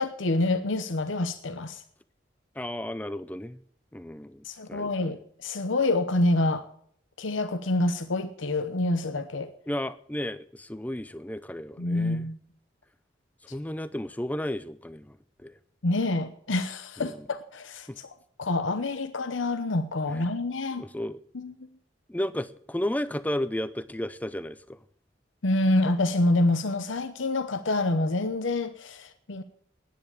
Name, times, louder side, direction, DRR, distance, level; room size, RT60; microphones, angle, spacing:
voice 1, 0.0-1.8 4.4-6.6 7.2-9.5 11.8-12.4 15.8-20.8 21.3-21.7 25.4-29.4, left 2 dB, 80° left, 0.9 m, -27 dB
voice 2, 2.6-3.6 3.9-5.1 9.7-12.3 13.5-15.6 17.0-17.3 17.9-18.0 20.8-21.2 22.1-24.8, left 1 dB, 10° left, 0.5 m, -33 dB
10.5 x 10.0 x 8.4 m
head